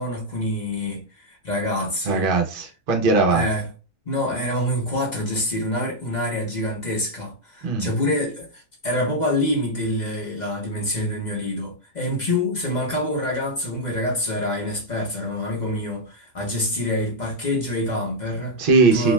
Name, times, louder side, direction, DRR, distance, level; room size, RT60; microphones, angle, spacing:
voice 1, 0.0-2.3 3.3-3.6 4.1-8.5 8.8-18.6 18.9-19.1, left 1 dB, 40° left, 0.8 m, -26 dB
voice 2, 2.0-3.5 7.6-7.9 18.6-19.1, right 4 dB, 50° right, 0.7 m, -19 dB
2.6 x 2.2 x 3.1 m
omnidirectional pair, 1.4 m